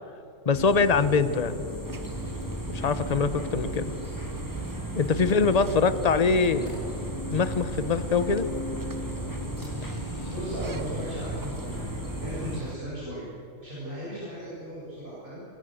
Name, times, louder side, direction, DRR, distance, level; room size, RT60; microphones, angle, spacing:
voice 1, 0.4-1.6 2.7-3.9 4.9-6.7 7.3-8.5, left 4 dB, 35° left, 13 dB, 1.0 m, -23 dB
sound 1, 0.5-12.6, equal, 15° left, 3.3 m, -35 dB
sound 2, 1.8-12.8, right 3 dB, 25° right, 0.4 m, -40 dB
sound 3, 6.4-9.2 9.5-9.8 10.3-10.6, equal, 60° right, 7.3 m, -57 dB
voice 2, 10.3-11.7 12.2-13.3 13.6-15.4, equal, 40° right, -8 dB, 7.7 m, -38 dB
25.5 x 21.5 x 8.0 m, 2.9 s
omnidirectional pair, 1.3 m